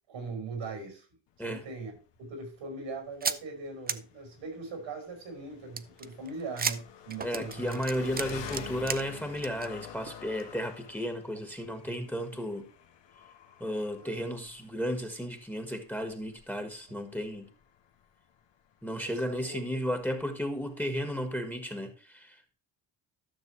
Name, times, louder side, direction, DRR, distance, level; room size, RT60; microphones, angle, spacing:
voice 1, 0.1-1.1 1.4-1.9 2.2-7.8 11.3-11.4 11.9-12.1 14.0-14.1 16.9-17.0 19.0-19.6, right 3 dB, 85° right, 5.1 m, -40 dB
Engine, 1.3-20.9, left 8 dB, 70° left, 1.5 m, -49 dB
sound 1, 3.2-3.4 3.9-4.0 5.8-9.0 9.3-9.7 10.1-10.2 10.4-10.5, right 5 dB, 20° right, 0.5 m, -33 dB
voice 2, 7.2-12.7 13.6-17.5 18.8-22.5, equal, 5° left, 1.5 m, -34 dB
12.5 x 6.5 x 3.2 m
cardioid pair, 100°, 45 cm